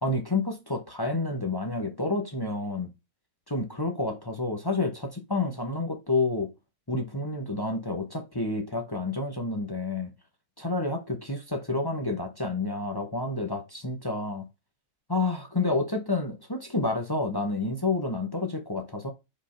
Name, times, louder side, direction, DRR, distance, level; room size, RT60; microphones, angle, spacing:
voice 1, 0.0-2.9 3.5-6.5 6.9-10.1 10.6-14.5 15.1-19.1, left 2 dB, 20° left, 0.7 m, -29 dB
5.3 x 4.3 x 5.6 m
omnidirectional pair, 1.6 m